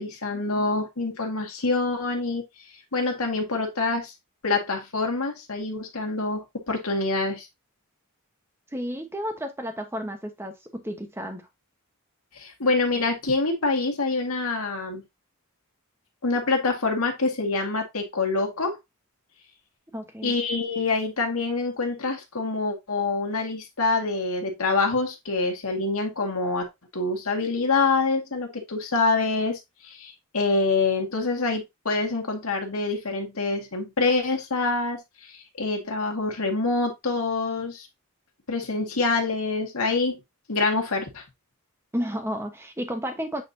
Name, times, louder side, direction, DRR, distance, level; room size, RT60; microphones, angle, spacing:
voice 1, 0.0-2.4 2.9-4.1 4.4-7.5 12.3-15.0 16.2-18.8 20.2-26.7 26.9-35.0 35.3-37.9 38.5-40.2 40.5-41.2, left 3 dB, 80° left, 2.0 m, -26 dB
voice 2, 8.7-11.5 19.9-20.4 41.9-43.4, equal, 10° right, 1.1 m, -32 dB
8.6 x 4.2 x 2.7 m
head